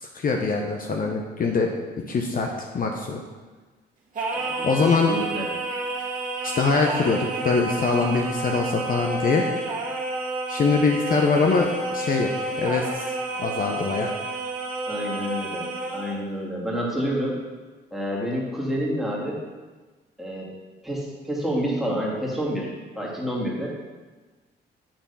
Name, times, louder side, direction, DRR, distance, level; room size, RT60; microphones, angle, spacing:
voice 1, 0.0-1.7 2.1-3.2 4.6-5.1 6.4-9.5 10.5-14.1, left 4 dB, 45° left, 2 dB, 0.7 m, -23 dB
Singing, 4.1-16.2, right 2 dB, 40° right, 1.7 m, -30 dB
voice 2, 4.3-5.5 14.9-15.7 15.9-17.4 17.9-19.4 20.2-20.5 20.8-22.7 23.0-23.7, equal, ahead, -4 dB, 2.0 m, -28 dB
8.7 x 3.4 x 5.5 m, 1.3 s
cardioid pair, 90°, 20 cm